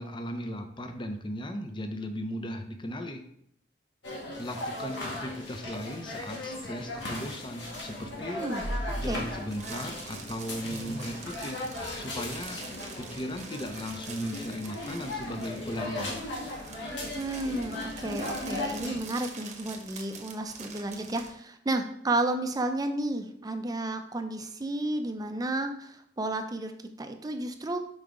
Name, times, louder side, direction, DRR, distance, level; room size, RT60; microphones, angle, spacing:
voice 1, 0.0-3.2 4.4-8.4 9.0-11.6 12.0-12.6 13.0-16.2, equal, 25° left, 6 dB, 0.6 m, -37 dB
sound 1, 4.0-19.0, left 1 dB, 80° left, 1.6 m, -37 dB
sound 2, 7.6-21.3, right 2 dB, 40° right, 0.9 m, -43 dB
voice 2, 17.1-26.7 27.0-27.8, right 2 dB, 20° right, 6 dB, 0.5 m, -32 dB
5.5 x 4.8 x 3.7 m, 0.71 s
head